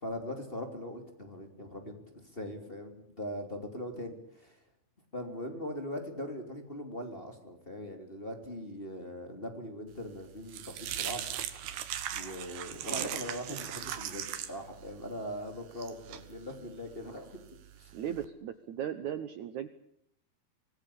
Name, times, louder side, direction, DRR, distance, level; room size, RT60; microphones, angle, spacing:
voice 1, 0.0-4.6 5.1-11.3 12.1-17.4 17.8-17.9, equal, 15° left, 4 dB, 3.0 m, -41 dB
sound 1, 10.0-18.2, right 10 dB, 85° right, 3.7 m, -40 dB
voice 2, 17.9-19.7, right 10 dB, 65° right, 11 dB, 2.1 m, -37 dB
25.5 x 20.0 x 8.7 m, 0.69 s
omnidirectional pair, 4.3 m